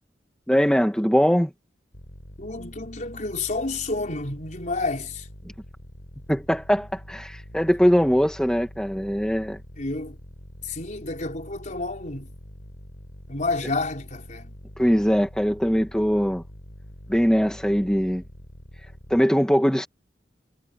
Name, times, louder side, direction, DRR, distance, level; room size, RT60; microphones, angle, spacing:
voice 1, 0.5-1.5 6.3-9.6 14.8-16.4 17.1-18.2 19.1-19.9, equal, 5° left, 1.7 m, -21 dB
sound 1, 1.9-19.2, equal, 70° left, 6.7 m, -45 dB
voice 2, 2.4-5.3 9.8-10.2 10.6-12.3 13.3-14.5, left 3 dB, 45° left, 4.8 m, -30 dB
head